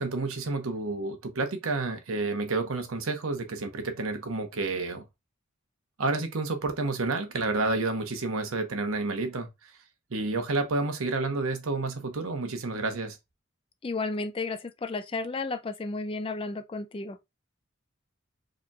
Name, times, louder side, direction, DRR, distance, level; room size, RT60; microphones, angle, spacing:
voice 1, 0.0-5.0 6.0-9.5 10.1-13.2, right 3 dB, 90° right, 0.9 m, -30 dB
voice 2, 13.8-17.2, left 3 dB, 25° left, 0.3 m, -33 dB
4.9 x 3.0 x 2.3 m
head